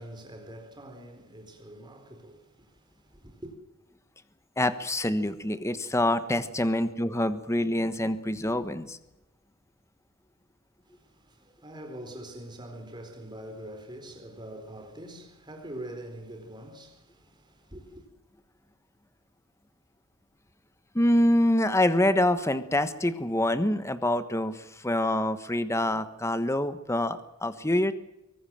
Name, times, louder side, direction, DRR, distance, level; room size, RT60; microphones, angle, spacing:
voice 1, 0.0-3.5 10.8-18.1, right 1 dB, 20° right, 4.3 m, -44 dB
voice 2, 4.6-9.0 20.9-27.9, left 1 dB, 15° left, 1.3 m, -26 dB
24.0 x 18.5 x 7.6 m
head